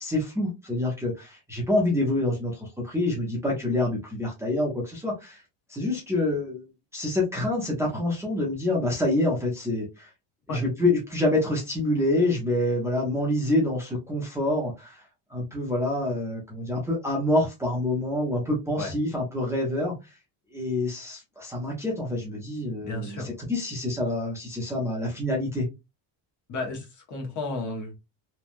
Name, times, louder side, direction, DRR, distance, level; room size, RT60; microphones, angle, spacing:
voice 1, 0.0-5.4 5.7-6.7 6.9-10.1 10.5-15.0 15.3-19.9 20.5-25.7, left 1 dB, 5° right, -4 dB, 0.6 m, -27 dB
voice 2, 22.8-23.3 26.5-27.9, left 2 dB, 40° left, 1 dB, 0.8 m, -33 dB
3.1 x 2.2 x 2.5 m, 0.24 s
cardioid pair, 175°, 47 cm